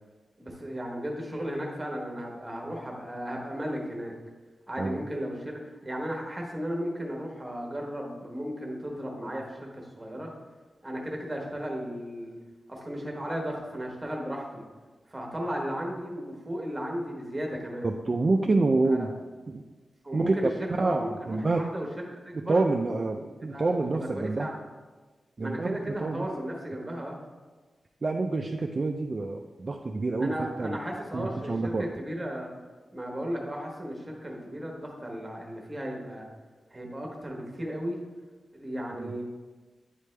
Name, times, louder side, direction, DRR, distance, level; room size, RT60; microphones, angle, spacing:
voice 1, 0.4-4.1 4.7-10.3 10.8-12.4 12.7-14.6 15.1-17.9 18.9-19.1 20.0-22.6 23.1-24.6 25.4-27.2 30.2-32.5 32.9-36.2 36.7-38.0 38.5-39.2, equal, 15° right, 0 dB, 1.0 m, -35 dB
voice 2, 4.8-5.1 17.8-19.1 19.5-19.6 20.1-20.3 20.8-21.6 22.5-24.5 25.4-26.3 28.0-30.8 31.1-31.9 38.9-39.2, right 3 dB, 35° right, 2 dB, 0.3 m, -27 dB
9.1 x 3.3 x 3.2 m, 1.3 s
wide cardioid pair, 135°, 0 cm